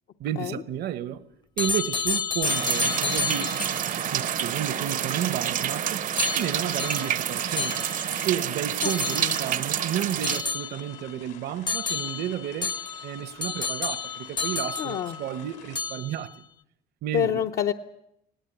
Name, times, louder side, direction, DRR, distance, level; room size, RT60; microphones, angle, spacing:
voice 1, 0.2-1.2 1.6-3.6 4.1-6.1 6.3-7.8 8.2-12.7 13.0-16.3 17.0-17.4, right 10 dB, 70° right, 1.1 m, -32 dB
sound 1, 1.6-4.0 6.2-8.3 8.8-9.6 10.2-11.1 11.7-15.4 15.7-16.3, left 5 dB, 25° left, 0.7 m, -31 dB
sound 2, 2.4-10.4, right 9 dB, 50° right, 0.8 m, -28 dB
sound 3, 4.8-15.8, left 9 dB, 90° left, 3.7 m, -51 dB
voice 2, 14.8-15.2 17.1-17.7, left 9 dB, 60° left, 0.9 m, -27 dB
19.5 x 18.5 x 9.3 m
cardioid pair, 110°, 17 cm